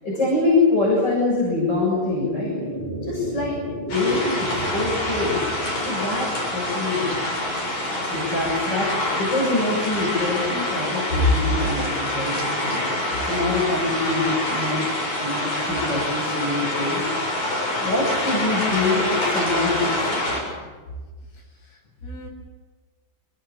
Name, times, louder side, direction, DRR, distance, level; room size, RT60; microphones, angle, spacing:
voice 1, 0.0-2.5 3.0-3.6 3.9-5.4 5.8-7.2 7.9-12.8 13.2-14.8 15.2-17.0 17.8-20.2, left 2 dB, 20° left, -4 dB, 7.7 m, -24 dB
sound 1, 1.2-11.7, right 1 dB, 70° right, 0.5 m, -35 dB
voice 2, 3.3-3.6 20.9-21.0 21.6-22.3, right 1 dB, 70° left, -1 dB, 9.9 m, -44 dB
sound 2, 3.9-20.4, left 1 dB, 50° left, 9.4 m, -26 dB
28.5 x 18.5 x 8.9 m, 1.3 s
omnidirectional pair, 5.2 m